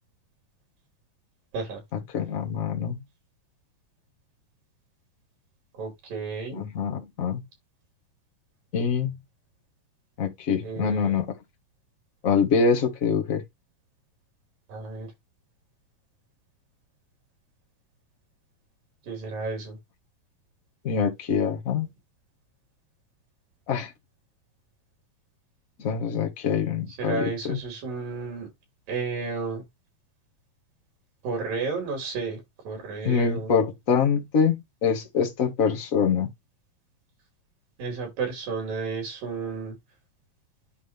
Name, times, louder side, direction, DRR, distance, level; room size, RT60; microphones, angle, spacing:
voice 1, 2.1-3.0 6.5-7.4 8.7-9.1 10.2-11.4 12.2-13.4 20.8-21.9 23.7-23.9 25.8-27.6 33.0-36.3, left 6 dB, 40° left, 1.2 m, -25 dB
voice 2, 5.8-6.7 10.6-11.2 14.7-15.1 19.1-19.8 27.0-28.5 28.9-29.6 31.2-33.5 37.8-39.8, right 4 dB, 75° right, 7.1 m, -32 dB
11.0 x 3.8 x 3.4 m
omnidirectional pair, 4.0 m